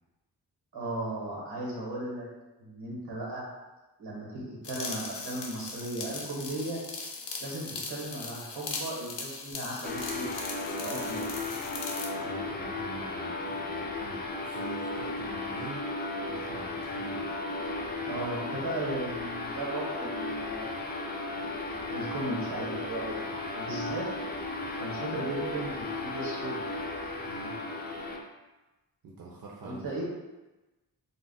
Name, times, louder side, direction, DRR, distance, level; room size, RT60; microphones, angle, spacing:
voice 1, 0.7-2.3 2.6-3.4 4.0-6.8 7.4-10.3 10.8-11.4 18.1-20.7 21.9-23.2 23.5-24.1 24.8-26.6 29.6-30.0, right 1 dB, 85° right, -3 dB, 1.2 m, -36 dB
sound 1, 4.6-12.1, left 4 dB, 90° left, 0.5 m, -39 dB
sound 2, 9.8-28.2, left 2 dB, 25° left, 0.4 m, -35 dB
voice 2, 12.2-15.8 16.3-17.3 27.2-27.6 29.0-29.8, right 2 dB, 60° right, -4 dB, 0.6 m, -45 dB
2.4 x 2.0 x 3.8 m, 1.1 s
cardioid pair, 65°, 41 cm